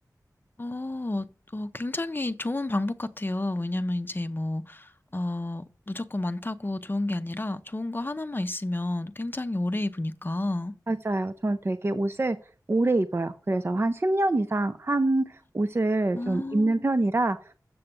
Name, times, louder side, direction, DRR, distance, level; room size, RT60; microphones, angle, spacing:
voice 1, 0.6-10.8 16.2-17.1, left 2 dB, 30° left, 0.7 m, -31 dB
voice 2, 10.9-12.4 12.7-15.2 15.5-17.4, right 2 dB, 35° right, 0.6 m, -25 dB
7.7 x 6.5 x 5.8 m
wide cardioid pair, 70°, 7 cm